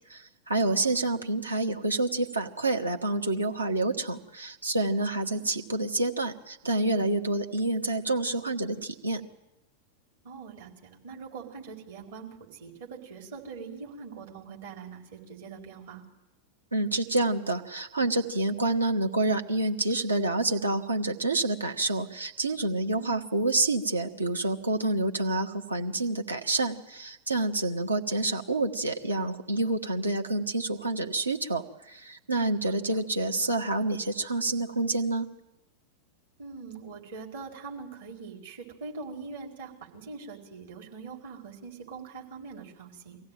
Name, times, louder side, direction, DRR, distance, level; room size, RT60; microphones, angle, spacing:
voice 1, 0.1-9.2 16.7-35.3, right 2 dB, 80° right, 4 dB, 1.6 m, -28 dB
voice 2, 0.7-1.0 5.1-5.4 10.2-16.0 22.9-23.3 32.6-33.0 36.4-43.2, right 5 dB, 60° right, 0 dB, 4.4 m, -43 dB
23.5 x 16.0 x 9.2 m, 0.96 s
figure-of-eight pair, 90°, 0 cm